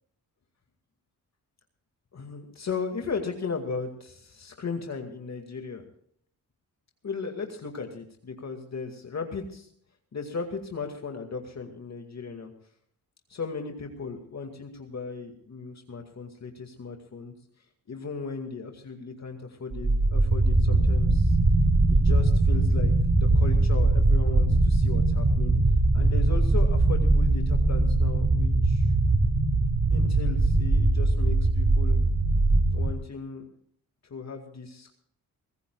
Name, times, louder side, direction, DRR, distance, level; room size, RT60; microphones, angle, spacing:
voice 1, 2.1-5.9 7.0-9.7 10.1-12.5 13.3-17.3 17.9-21.4 21.9-25.6 25.9-28.9 29.9-32.0 32.7-33.4 34.0-34.9, left 4 dB, 50° left, 4 dB, 2.2 m, -36 dB
sound 1, 19.7-32.9, right 2 dB, 35° right, 1.9 m, -21 dB
23.5 x 16.0 x 2.4 m, 0.64 s
cardioid pair, 70°, 36 cm